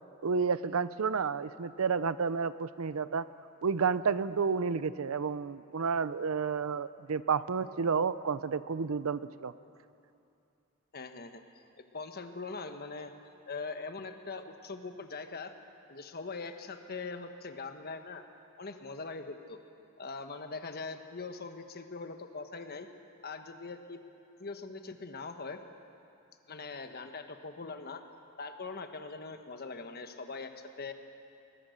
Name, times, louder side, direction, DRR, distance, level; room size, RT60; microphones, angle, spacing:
voice 1, 0.2-3.3 3.6-9.5, right 5 dB, 85° right, 15 dB, 0.6 m, -31 dB
voice 2, 10.9-11.6 11.9-13.1 13.5-15.5 15.9-18.2 18.6-19.6 20.0-22.9 23.2-24.0 24.4-25.6 26.5-28.0 28.4-30.9, left 4 dB, 50° left, 7 dB, 1.2 m, -42 dB
21.5 x 20.5 x 6.5 m, 2.7 s
head